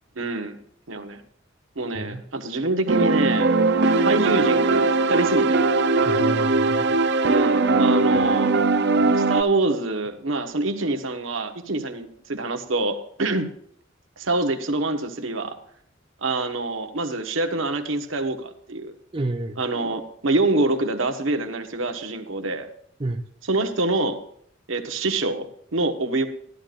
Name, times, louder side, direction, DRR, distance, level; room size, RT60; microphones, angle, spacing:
voice 1, 0.1-0.5 0.9-1.2 1.8-3.5 4.0-5.6 7.2-8.5 9.1-13.5 14.2-15.6 16.2-18.9 19.6-22.7 23.5-24.2 24.7-26.3, right 2 dB, 85° right, 1.2 m, -25 dB
sound 1, 2.9-9.4, right 3 dB, 60° right, 0.7 m, -20 dB
voice 2, 6.0-7.0 19.1-19.6 23.0-23.3, right 2 dB, 25° right, 0.7 m, -30 dB
14.0 x 12.0 x 2.5 m
head